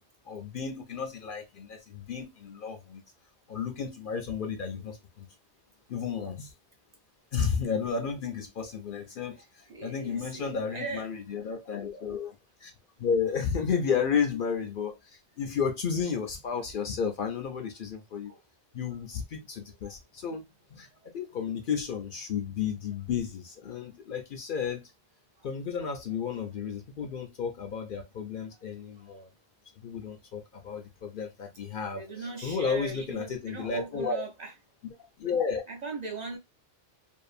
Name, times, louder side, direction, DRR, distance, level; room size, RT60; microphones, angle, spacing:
voice 1, 0.3-3.0 3.5-5.3 5.9-6.5 7.3-12.7 13.0-18.3 18.7-20.4 20.7-24.9 25.4-29.3 29.8-32.0 32.4-34.2 35.2-35.6, left 6 dB, 60° left, 0.6 m, -32 dB
voice 2, 9.3-11.1 18.3-18.4 19.8-19.9 25.4-25.5 28.5-28.6 29.0-29.1 31.5-34.5 35.7-36.4, right 3 dB, 50° right, 0.6 m, -40 dB
2.6 x 2.4 x 2.4 m
omnidirectional pair, 1.1 m